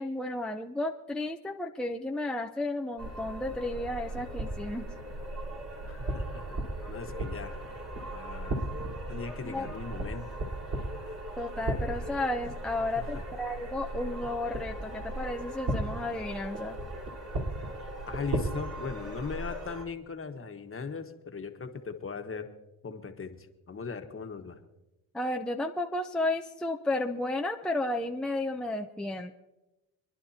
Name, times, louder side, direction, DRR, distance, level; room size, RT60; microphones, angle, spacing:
voice 1, 0.0-4.9 9.4-9.7 11.4-16.8 25.1-29.3, left 2 dB, ahead, 3 dB, 0.6 m, -33 dB
sound 1, 3.0-19.8, right 1 dB, 50° right, 4.1 m, -36 dB
voice 2, 5.9-6.6 6.9-7.6 8.1-8.6 9.1-10.3 12.9-13.0 18.1-22.5 22.8-24.6, left 5 dB, 35° left, 5 dB, 1.4 m, -39 dB
27.0 x 11.0 x 2.8 m, 1.0 s
cardioid pair, 90°, 39 cm